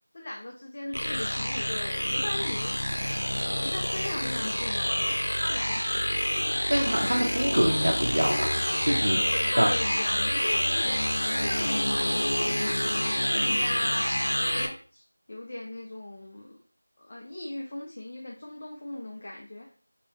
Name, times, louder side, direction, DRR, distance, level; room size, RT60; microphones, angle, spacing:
voice 1, 0.1-2.7 3.6-6.2 9.2-11.0 11.4-15.0 15.3-16.6 17.0-19.7, left 1 dB, 30° left, -1 dB, 0.4 m, -38 dB
sound 1, 0.9-14.7, equal, 85° left, 0.6 m, -27 dB
voice 2, 6.7-8.5 8.8-9.2 9.6-9.7, right 1 dB, 80° right, -1 dB, 0.6 m, -25 dB
3.0 x 2.7 x 3.0 m, 0.41 s
figure-of-eight pair, 175°, 0 cm